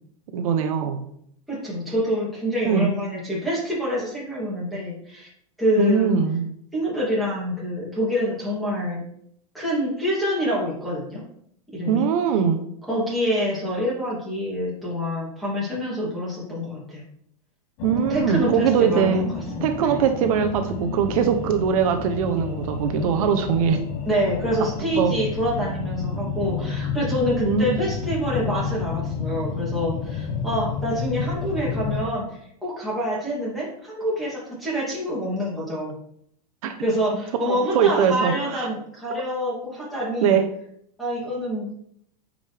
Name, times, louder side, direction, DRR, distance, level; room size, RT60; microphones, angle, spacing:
voice 1, 0.3-1.0 2.6-2.9 5.8-6.5 11.9-12.6 17.8-19.3 19.6-23.8 25.0-25.2 27.4-27.8 36.6-36.7 37.4-38.7 40.2-40.5, right 7 dB, 65° right, 7 dB, 0.8 m, -21 dB
voice 2, 1.5-5.3 5.6-6.1 6.7-9.0 9.5-11.2 11.7-12.1 12.9-17.0 18.1-19.3 19.5-20.0 24.1-35.9 36.8-40.4 41.0-41.7, equal, ahead, -7 dB, 2.7 m, -26 dB
sound 1, 17.8-32.1, left 5 dB, 40° left, 1.0 m, -30 dB
9.1 x 5.1 x 3.4 m, 0.70 s
supercardioid pair, 160°, 20 cm